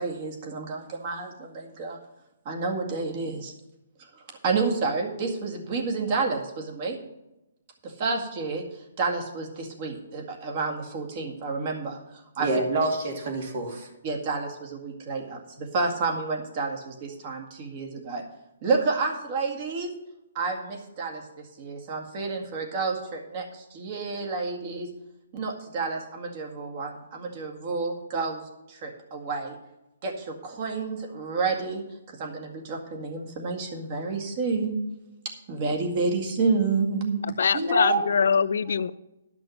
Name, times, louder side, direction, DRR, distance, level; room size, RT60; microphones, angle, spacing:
voice 1, 0.0-2.0 2.5-3.5 4.0-7.0 7.8-12.5 14.0-18.2 18.6-19.9 20.3-24.9 25.3-28.4 28.7-29.6 30.0-34.8 35.2-37.3, right 4 dB, 35° right, 2.0 m, -30 dB
voice 2, 12.4-13.9 37.5-38.1, right 1 dB, 50° right, 2.4 m, -26 dB
voice 3, 37.4-38.9, left 6 dB, 70° left, 0.4 m, -23 dB
12.0 x 6.1 x 6.5 m
hypercardioid pair, 160°, 0 cm